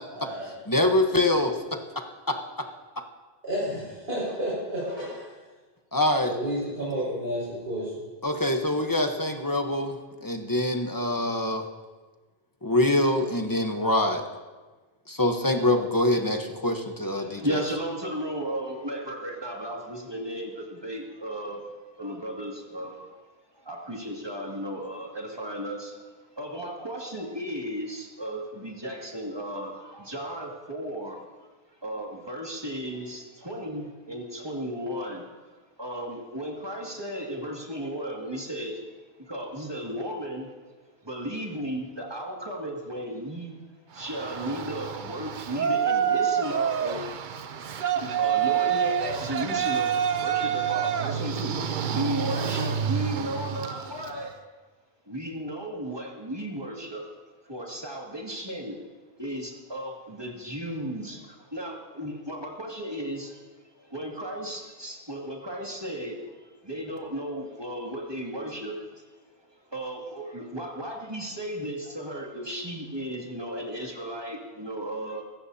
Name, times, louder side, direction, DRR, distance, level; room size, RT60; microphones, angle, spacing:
voice 1, 0.1-0.5 3.4-5.3 6.3-8.0, equal, 75° right, -9 dB, 5.8 m, -31 dB
voice 2, 0.7-1.5 5.9-6.3 8.2-11.6 12.6-14.2 15.1-17.6, left 1 dB, 20° left, 4 dB, 1.1 m, -24 dB
voice 3, 17.0-23.2 23.6-31.5 31.8-38.9 39.3-40.5 41.0-43.6 43.9-47.1 47.8-54.4 55.1-57.1 57.4-58.8 59.2-63.4 63.7-69.0 69.4-75.2, equal, 25° right, -1 dB, 2.4 m, -35 dB
Yell, 44.0-54.2, right 8 dB, 55° right, 0.7 m, -28 dB
24.5 x 15.0 x 2.8 m, 1.3 s
omnidirectional pair, 1.1 m